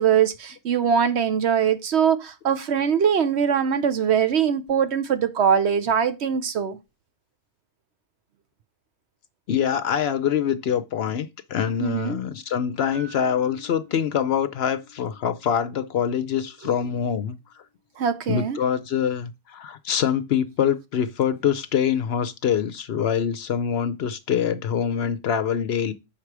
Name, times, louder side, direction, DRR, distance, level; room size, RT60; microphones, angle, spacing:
voice 1, 0.0-6.8 11.8-12.2 18.0-18.6, right 7 dB, 65° right, 1.0 m, -22 dB
voice 2, 9.5-17.4 18.3-25.9, left 8 dB, 60° left, 0.8 m, -24 dB
sound 1, 12.9-17.0, left 2 dB, 25° right, 2.9 m, -49 dB
5.9 x 4.8 x 5.9 m
omnidirectional pair, 1.3 m